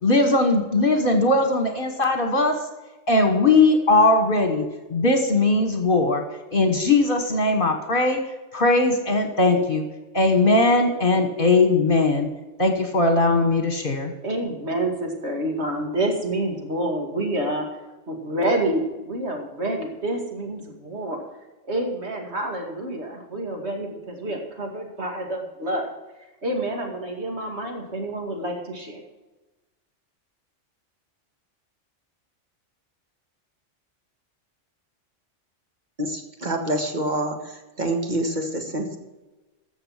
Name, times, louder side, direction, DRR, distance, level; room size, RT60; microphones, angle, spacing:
voice 1, 0.0-2.5 3.1-4.6 4.9-6.2 6.5-8.2 8.5-9.8 10.1-12.3 12.6-14.1, left 2 dB, 45° left, 5 dB, 1.5 m, -19 dB
voice 2, 14.2-17.7 18.1-21.2 21.7-25.9 26.4-29.0, right 1 dB, 60° right, 2 dB, 2.5 m, -28 dB
voice 3, 36.0-37.4 37.8-39.0, right 1 dB, 35° right, 4 dB, 1.8 m, -26 dB
13.5 x 7.1 x 5.8 m, 1.1 s
omnidirectional pair, 1.3 m